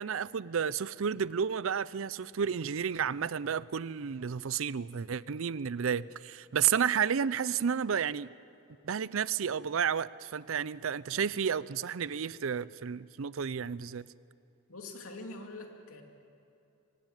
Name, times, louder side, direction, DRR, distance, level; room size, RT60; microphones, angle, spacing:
voice 1, 0.0-8.3 8.8-14.1, right 7 dB, 70° right, 0.5 m, -31 dB
voice 2, 14.7-16.0, left 2 dB, 90° left, 2.6 m, -44 dB
24.0 x 16.5 x 9.2 m
head